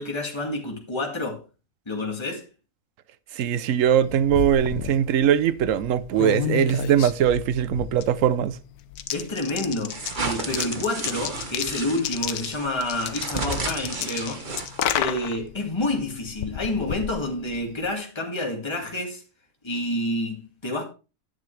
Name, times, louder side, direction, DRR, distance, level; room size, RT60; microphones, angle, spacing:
voice 1, 0.0-1.4 1.9-2.5 9.1-14.5 14.9-19.2 19.6-20.8, left 1 dB, 20° left, 2.2 m, -29 dB
voice 2, 3.3-8.6, right 9 dB, 65° right, 1.0 m, -21 dB
sound 1, 3.9-17.9, left 10 dB, 80° left, 1.2 m, -33 dB
sound 2, 9.9-15.0, right 3 dB, 35° right, 1.3 m, -33 dB
10.5 x 8.7 x 3.3 m
omnidirectional pair, 1.6 m